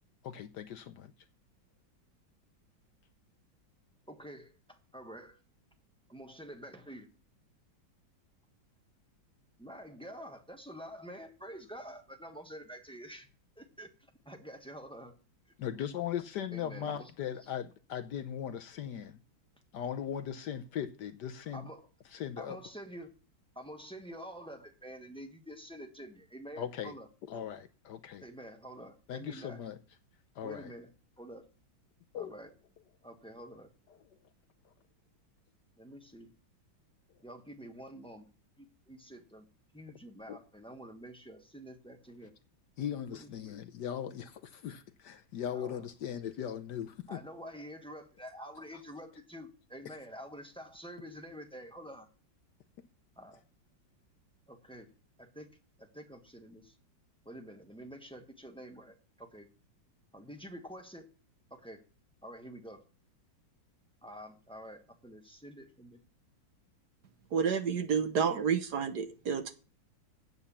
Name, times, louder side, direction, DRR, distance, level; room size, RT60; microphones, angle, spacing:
voice 1, 0.2-1.1 15.6-19.2 19.7-21.7 22.1-22.6 26.6-26.9 27.3-28.2 29.1-29.8 30.4-30.7 32.1-32.4 40.3-40.4 42.8-47.2, left 9 dB, 65° left, 1.2 m, -38 dB
voice 2, 4.1-5.4 6.1-7.1 9.6-13.3 13.6-13.9 14.2-15.1 16.5-17.1 21.5-21.9 22.4-23.1 23.5-27.1 28.2-29.6 30.4-30.9 31.2-31.5 32.1-32.5 33.0-33.7 35.8-36.3 37.2-38.3 38.6-39.5 39.7-42.3 43.1-43.3 45.5-45.9 47.1-52.1 53.2-53.4 54.5-54.9 55.2-56.7 57.2-59.5 60.1-61.1 61.5-61.8 62.2-62.8 64.0-66.0, equal, 5° left, 1.0 m, -48 dB
voice 3, 67.3-69.5, right 6 dB, 60° right, 1.5 m, -30 dB
9.2 x 8.0 x 7.1 m
omnidirectional pair, 2.1 m